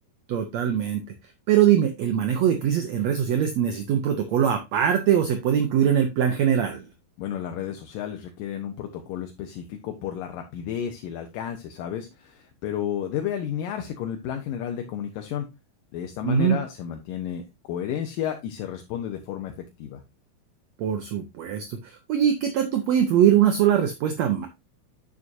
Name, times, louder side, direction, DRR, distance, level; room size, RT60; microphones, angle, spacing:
voice 1, 0.3-1.0 1.5-6.9 16.2-16.6 20.8-24.5, right 9 dB, 75° right, 6 dB, 1.6 m, -22 dB
voice 2, 7.2-15.5 15.9-17.4 17.7-19.5 19.8-20.0, left 9 dB, 75° left, 5 dB, 2.4 m, -32 dB
9.7 x 6.2 x 2.6 m, 0.23 s
omnidirectional pair, 4.1 m